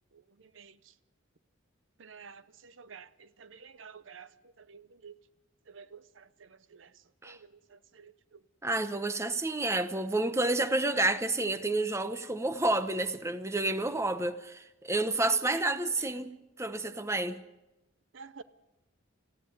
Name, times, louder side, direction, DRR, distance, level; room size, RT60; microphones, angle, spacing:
voice 1, 0.4-0.7 2.0-4.3 4.6-5.1 5.7-6.9 7.2-8.4 15.5-15.6 18.1-18.4, right 5 dB, 65° right, 0.7 m, -51 dB
voice 2, 8.6-16.3 16.6-17.4, right 2 dB, 15° right, 0.9 m, -29 dB
19.0 x 15.0 x 9.6 m
head